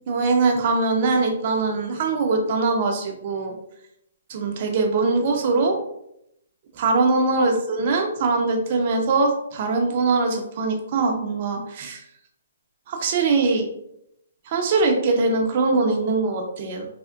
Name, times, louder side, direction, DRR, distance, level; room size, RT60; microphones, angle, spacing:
voice 1, 0.1-3.5 4.3-5.8 6.8-12.0 12.9-13.7 14.5-16.9, right 3 dB, 45° right, 3 dB, 0.6 m, -22 dB
3.4 x 2.1 x 2.5 m, 0.78 s
hypercardioid pair, 150°, 0 cm